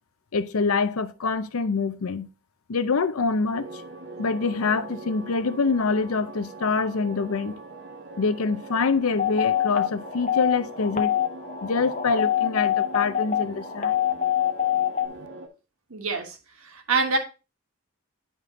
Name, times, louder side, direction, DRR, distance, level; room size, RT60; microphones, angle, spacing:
voice 1, 0.3-2.3 2.7-3.8 4.2-7.6 8.2-11.1 11.6-14.0, left 4 dB, 85° left, 0.6 m, -25 dB
sound 1, 3.5-15.5, right 3 dB, 55° right, 1.2 m, -42 dB
sound 2, 9.2-15.1, left 10 dB, 35° left, 0.7 m, -25 dB
voice 2, 15.9-17.2, right 4 dB, 80° right, 1.4 m, -26 dB
9.9 x 3.7 x 3.7 m
head